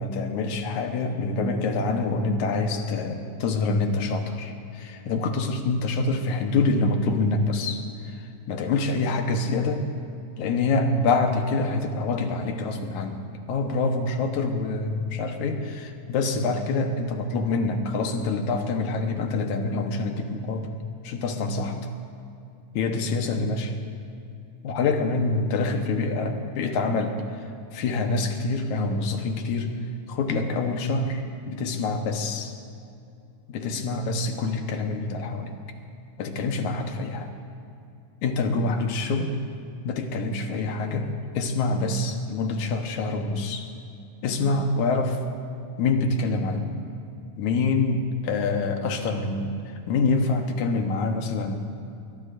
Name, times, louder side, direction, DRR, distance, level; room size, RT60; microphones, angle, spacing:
voice 1, 0.0-9.8 10.4-20.7 21.0-21.9 22.7-23.7 24.6-27.2 27.7-29.8 30.1-32.5 33.5-35.6 36.2-37.3 38.2-39.4 39.8-43.7 44.2-45.2 45.8-46.9 47.4-51.6, left 3 dB, 75° left, 4 dB, 2.5 m, -26 dB
22.0 x 21.5 x 2.6 m, 2.6 s
omnidirectional pair, 3.6 m